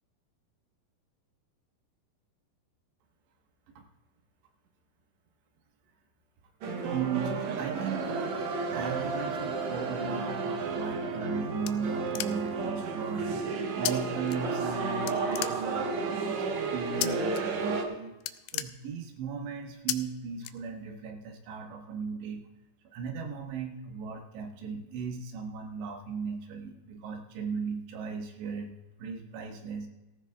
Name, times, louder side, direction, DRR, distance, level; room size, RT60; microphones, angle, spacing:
sound 1, 6.6-17.8, right 4 dB, 65° right, 1.9 m, -32 dB
voice 1, 6.9-8.4 8.7-18.1 18.5-22.4 22.9-29.9, right 5 dB, 85° right, 3 dB, 3.6 m, -37 dB
sound 2, 11.0-12.7 13.8-13.9 14.3-14.8 15.1-16.0 17.0-17.4 17.7-17.9 18.1-19.3 19.9-20.0 20.4-21.1, left 15 dB, 85° left, 2.2 m, -35 dB
18.0 x 16.0 x 2.4 m, 1.0 s
omnidirectional pair, 4.9 m